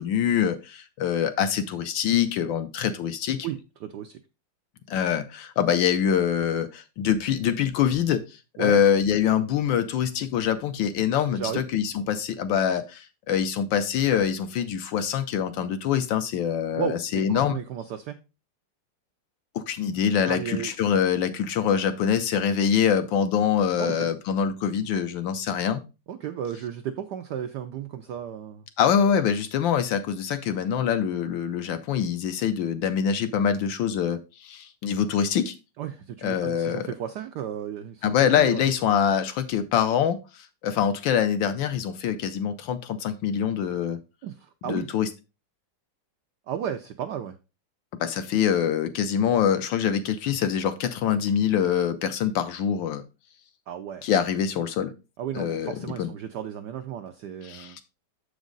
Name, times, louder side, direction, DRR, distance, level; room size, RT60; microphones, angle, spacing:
voice 1, 0.0-3.5 4.9-8.2 8.6-17.6 19.5-25.8 28.8-35.5 36.2-36.9 38.0-44.0 44.6-45.1 48.0-53.0 54.0-54.9 55.3-56.1 57.4-57.8, left 8 dB, 75° left, 10 dB, 1.3 m, -24 dB
voice 2, 3.4-4.2 8.6-8.8 11.3-11.6 16.8-18.2 20.3-20.7 23.8-24.1 26.1-28.6 35.8-38.6 44.2-44.9 46.5-47.4 53.7-54.1 55.2-57.8, right 9 dB, 80° right, 7 dB, 0.9 m, -34 dB
7.2 x 5.1 x 3.8 m, 0.29 s
omnidirectional pair, 2.4 m